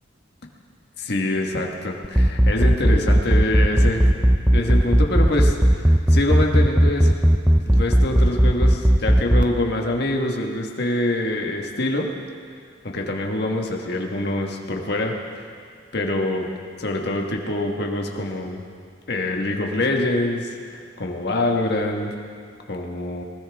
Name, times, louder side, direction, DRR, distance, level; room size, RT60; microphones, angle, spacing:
voice 1, 1.0-4.0 4.5-7.1 7.5-12.1 12.8-15.1 15.9-16.5 16.8-18.6 19.1-22.1 22.7-23.2, left 1 dB, 60° left, 1 dB, 1.5 m, -25 dB
sound 1, 2.0-9.4, equal, 5° right, 0.5 m, -15 dB
20.5 x 20.0 x 3.5 m, 2.2 s
head